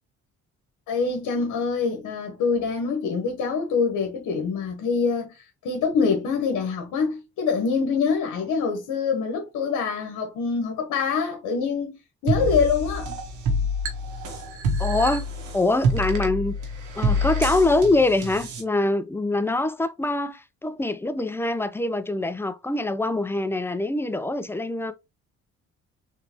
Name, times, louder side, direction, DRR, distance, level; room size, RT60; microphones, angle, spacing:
voice 1, 0.9-12.0 12.2-13.2, left 5 dB, 80° left, 1.1 m, -25 dB
sound 1, 12.3-18.6, equal, 90° right, 1.1 m, -27 dB
voice 2, 14.8-16.6 17.0-24.9, left 2 dB, 10° left, 0.4 m, -24 dB
3.7 x 3.3 x 2.8 m
cardioid pair, 90°, 30 cm